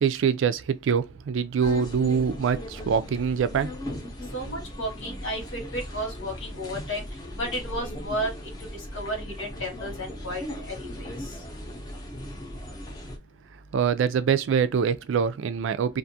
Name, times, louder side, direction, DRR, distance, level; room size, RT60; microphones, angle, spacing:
voice 1, 0.0-3.8 13.7-16.0, right 7 dB, 80° right, 0.3 m, -24 dB
sound 1, 1.6-13.2, left 1 dB, 20° left, 0.6 m, -38 dB
voice 2, 4.3-7.0 7.4-8.3 8.9-10.4 10.7-11.1, equal, 85° left, 1.3 m, -32 dB
2.5 x 2.3 x 2.6 m
head